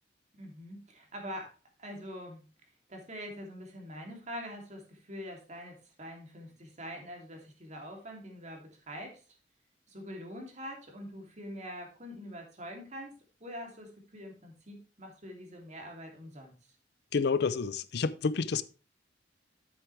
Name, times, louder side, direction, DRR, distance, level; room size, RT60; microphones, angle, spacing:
voice 1, 0.4-2.4 2.9-9.2 9.9-13.1 13.4-16.5, equal, 40° right, 2.9 m, -44 dB
voice 2, 17.1-18.6, left 5 dB, 65° left, 0.5 m, -29 dB
10.5 x 7.9 x 3.3 m
head